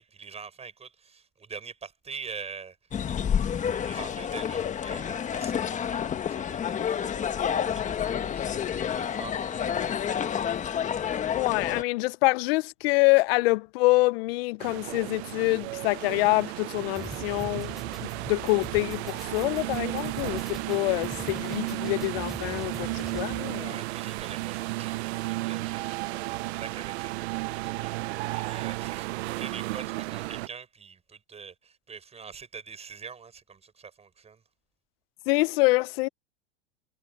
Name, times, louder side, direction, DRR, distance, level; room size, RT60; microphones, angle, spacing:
voice 1, 0.0-2.8 3.7-9.9 10.1-10.9 23.5-34.4, right 5 dB, 20° right, 7.1 m, -45 dB
University of Exeter on a windy day, 2.9-11.8, left 8 dB, 20° left, 1.3 m, -29 dB
voice 2, 11.3-23.8 35.3-36.1, left 24 dB, 60° left, 0.8 m, -26 dB
sound 1, 14.6-30.5, right 20 dB, 70° right, 0.6 m, -33 dB
sound 2, 16.9-23.6, equal, ahead, 3.7 m, -43 dB
supercardioid pair, 125°, 34 cm